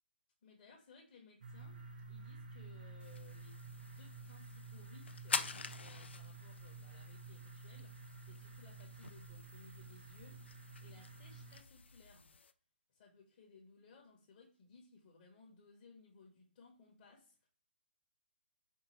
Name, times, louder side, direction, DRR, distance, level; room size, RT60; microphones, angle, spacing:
voice 1, 0.4-5.4 5.8-7.9 8.2-10.4 10.8-12.3 12.9-17.5, left 4 dB, 40° left, -2 dB, 0.9 m, -62 dB
sound 1, 1.4-11.6, right 3 dB, 55° right, 0.7 m, -52 dB
sound 2, 3.0-12.5, left 5 dB, 85° left, 0.3 m, -47 dB
4.5 x 2.2 x 3.1 m, 0.42 s
hypercardioid pair, 160°, 6 cm